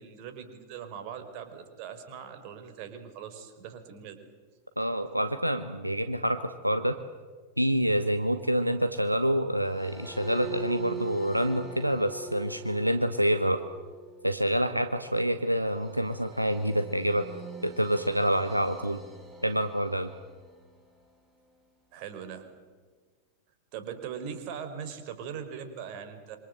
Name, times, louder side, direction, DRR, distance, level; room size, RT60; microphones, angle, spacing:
voice 1, 0.0-4.2 21.9-22.5 23.7-26.4, right 7 dB, 45° right, 7 dB, 4.4 m, -40 dB
voice 2, 4.8-6.9 7.6-13.6 14.2-17.3 17.6-19.0 19.4-20.1, equal, 90° right, 9 dB, 1.1 m, -27 dB
sound 1, 9.6-21.0, right 4 dB, 10° right, 6.3 m, -44 dB
26.5 x 25.0 x 7.8 m, 1.5 s
figure-of-eight pair, 90°, 0 cm